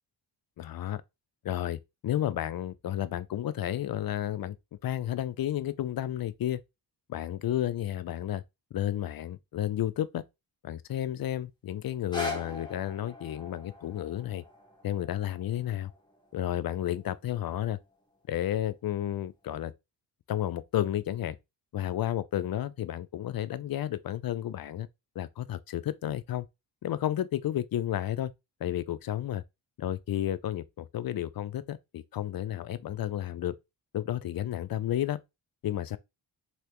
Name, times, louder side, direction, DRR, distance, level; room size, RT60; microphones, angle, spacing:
voice 1, 0.6-1.0 1.4-4.6 4.8-6.6 7.1-8.4 8.7-10.2 10.6-14.4 14.8-15.9 16.3-17.8 18.3-19.7 20.3-21.4 21.7-24.9 25.2-26.5 26.8-28.3 28.6-29.4 29.8-33.5 33.9-35.2 35.6-36.0, left 12 dB, 50° left, 0.5 m, -32 dB
sound 1, 11.9-17.9 18.6-18.7, left 2 dB, 10° left, 1.3 m, -42 dB
3.3 x 2.9 x 2.9 m
cardioid pair, 80°, 46 cm